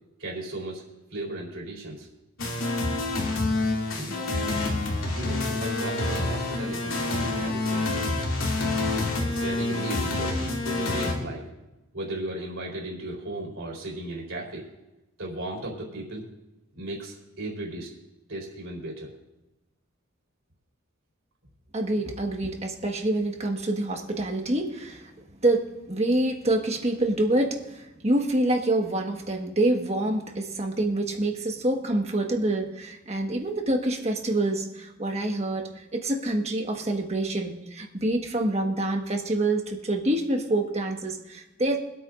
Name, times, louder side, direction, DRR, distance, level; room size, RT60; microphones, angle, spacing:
voice 1, 0.2-0.8 1.1-2.1 4.0-4.1 5.1-8.1 9.2-11.5 11.9-14.7 15.2-16.3 16.7-17.9 18.3-19.1, right 1 dB, 65° right, -2 dB, 3.9 m, -36 dB
sound 1, 2.4-11.1, left 2 dB, 85° left, 2.5 m, -27 dB
voice 2, 21.7-25.1 25.4-41.9, right 1 dB, 30° right, 2 dB, 1.5 m, -26 dB
25.0 x 8.7 x 2.6 m, 1.0 s
head